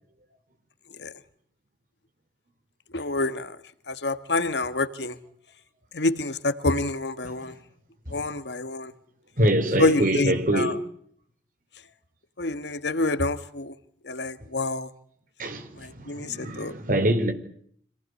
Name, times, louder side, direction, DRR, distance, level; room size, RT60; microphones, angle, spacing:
voice 1, 2.9-3.6 3.9-5.2 5.9-7.5 8.1-8.9 9.8-10.8 12.4-13.8 14.0-14.9 15.8-16.7, left 2 dB, 75° left, 1.6 m, -27 dB
voice 2, 9.4-10.8 15.4-17.3, right 1 dB, 50° right, 4.4 m, -24 dB
26.5 x 18.5 x 9.7 m
head